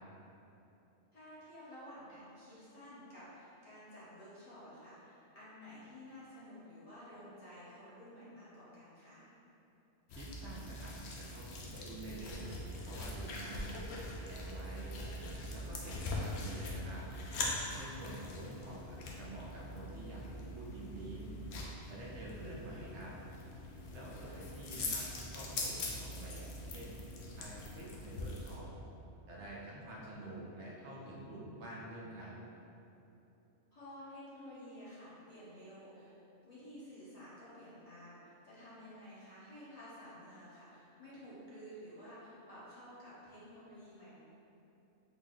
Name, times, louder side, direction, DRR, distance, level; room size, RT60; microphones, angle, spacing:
voice 1, 1.1-9.2 13.2-13.8 33.7-36.1 36.4-44.2, equal, 35° left, -11 dB, 0.9 m, -52 dB
sound 1, 10.1-28.6, left 2 dB, 70° left, 0.8 m, -42 dB
voice 2, 10.2-12.6 12.9-13.8 14.2-15.0 15.5-17.0 17.8-20.2 20.5-21.4 21.9-23.1 23.9-25.0 25.3-27.0 27.4-28.7 29.3-32.3, right 1 dB, 70° right, -4 dB, 0.9 m, -48 dB
4.1 x 2.0 x 3.6 m, 3.0 s
omnidirectional pair, 1.3 m